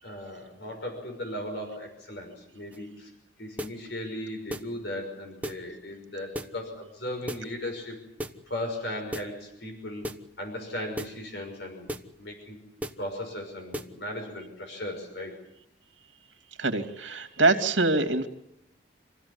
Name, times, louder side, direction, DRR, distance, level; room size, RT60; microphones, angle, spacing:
voice 1, 0.0-3.1 3.4-8.0 8.5-10.1 10.4-11.9 12.2-12.6 13.0-15.4, left 1 dB, 65° left, 4 dB, 5.9 m, -37 dB
sound 1, 2.7-2.9 3.6-3.8 4.5-4.7 5.4-5.7 6.3-6.6 7.3-7.5 8.2-8.4 9.1-9.3 10.0-10.3 11.0-11.2 11.9-12.1 12.8-13.0 13.7-14.0, equal, 10° right, 1.1 m, -35 dB
voice 2, 16.6-18.3, right 3 dB, 80° right, 7 dB, 2.7 m, -24 dB
27.0 x 16.0 x 9.8 m, 0.80 s
head